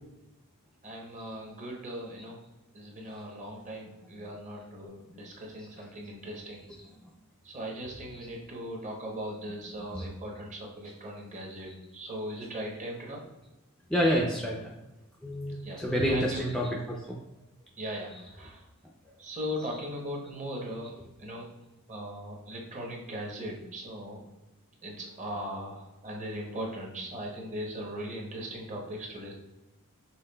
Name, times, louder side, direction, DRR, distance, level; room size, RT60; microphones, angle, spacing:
voice 1, 0.8-2.4 2.7-6.6 7.4-13.2 15.6-15.8 16.1-16.4 17.8-18.6 19.2-21.5 21.9-24.2 24.8-29.3, equal, 35° right, -1 dB, 0.8 m, -39 dB
voice 2, 13.9-14.7 15.2-17.2, equal, 5° left, -3 dB, 0.3 m, -29 dB
5.6 x 3.3 x 2.2 m, 0.98 s
head